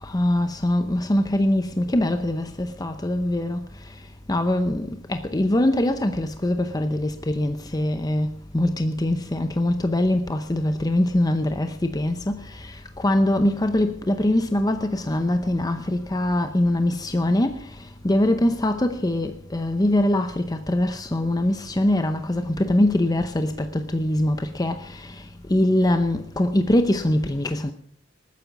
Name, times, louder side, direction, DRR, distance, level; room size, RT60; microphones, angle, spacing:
voice 1, 0.0-4.0 4.3-27.7, left 1 dB, 20° left, 0.7 m, -23 dB
20.0 x 9.3 x 5.9 m
head